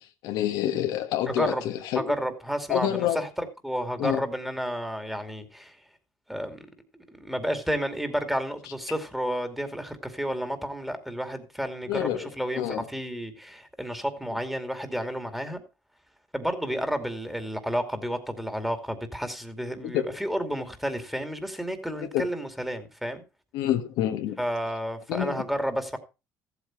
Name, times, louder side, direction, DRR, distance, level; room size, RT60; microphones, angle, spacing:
voice 1, 0.0-2.1 2.7-3.3 4.0-4.2 11.9-12.9 19.8-20.1 22.1-22.2 23.5-24.4 25.1-25.4, left 11 dB, 80° left, 1.4 m, -28 dB
voice 2, 1.3-1.6 1.9-5.8 6.3-6.7 6.9-15.6 16.3-23.2 24.4-26.0, equal, 5° right, 2.4 m, -31 dB
14.5 x 8.2 x 4.5 m
cardioid pair, 95°, 7 cm